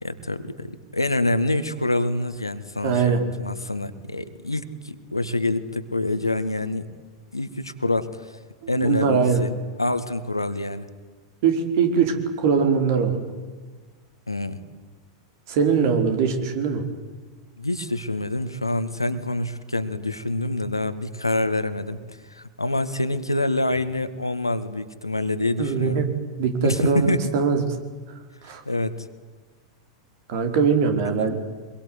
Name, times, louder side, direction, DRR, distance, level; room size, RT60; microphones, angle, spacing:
voice 1, 0.0-6.9 7.3-8.3 8.7-9.5 9.8-10.9 14.3-14.6 17.6-26.0 26.6-27.3 28.7-29.1 31.0-31.3, left 2 dB, 85° left, 11 dB, 1.9 m, -26 dB
voice 2, 2.8-3.2 8.6-9.4 11.4-13.3 15.5-16.8 25.6-26.1 26.4-27.6 28.4-28.6 30.3-31.4, right 6 dB, 50° right, 5 dB, 4.7 m, -21 dB
25.5 x 22.0 x 9.8 m, 1.4 s
figure-of-eight pair, 90°, 2 cm